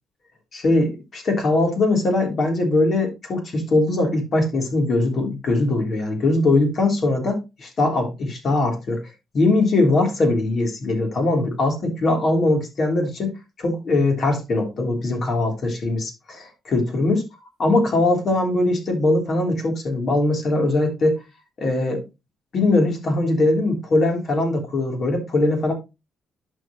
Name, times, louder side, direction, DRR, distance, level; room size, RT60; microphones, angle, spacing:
voice 1, 0.5-13.3 13.6-17.2 17.6-21.2 21.6-22.0 22.5-25.7, left 2 dB, 55° left, 3.3 m, -21 dB
11.5 x 4.8 x 3.0 m
cardioid pair, 90°, 0 cm